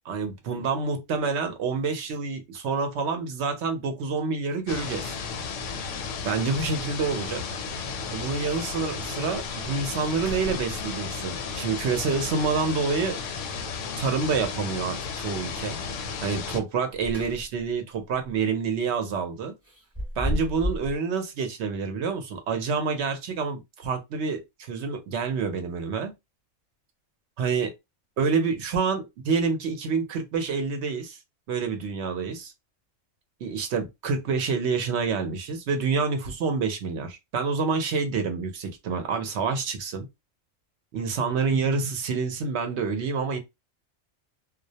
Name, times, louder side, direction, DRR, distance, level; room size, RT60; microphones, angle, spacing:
voice 1, 0.1-5.1 6.2-7.4 8.1-13.2 14.0-15.8 16.2-19.5 20.2-26.1 27.4-27.7 28.2-31.2 31.5-32.5 33.4-40.1 40.9-43.4, right 5 dB, 65° right, 0.8 m, -27 dB
sound 1, 4.4-4.5 6.2-6.3 6.7-6.8 7.0-7.6 8.2-8.3 8.8-8.9 9.3-9.7 10.1-11.2 13.3-13.9 16.7-17.7 18.1-18.3 19.6-21.0, equal, 15° right, 0.7 m, -34 dB
sound 2, 4.7-16.6, left 5 dB, 75° left, 0.9 m, -34 dB
2.3 x 2.0 x 2.7 m
omnidirectional pair, 1.3 m